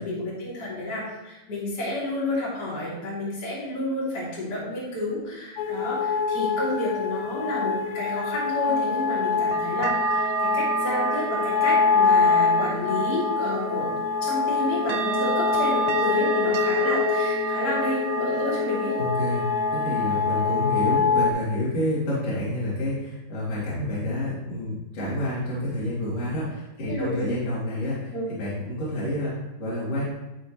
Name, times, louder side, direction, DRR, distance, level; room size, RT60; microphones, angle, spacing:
voice 1, 0.0-13.9 14.2-18.9 21.0-21.2 26.9-27.3 28.1-28.3, left 1 dB, 30° left, -7 dB, 3.1 m, -30 dB
sound 1, 5.6-21.3, left 5 dB, 90° left, 2.7 m, -25 dB
sound 2, 8.7-21.0, right 6 dB, 85° right, 2.5 m, -31 dB
voice 2, 19.0-19.4 19.7-28.1 28.4-30.0, left 1 dB, 45° left, -9 dB, 3.9 m, -28 dB
13.0 x 5.2 x 3.2 m, 1.0 s
omnidirectional pair, 4.4 m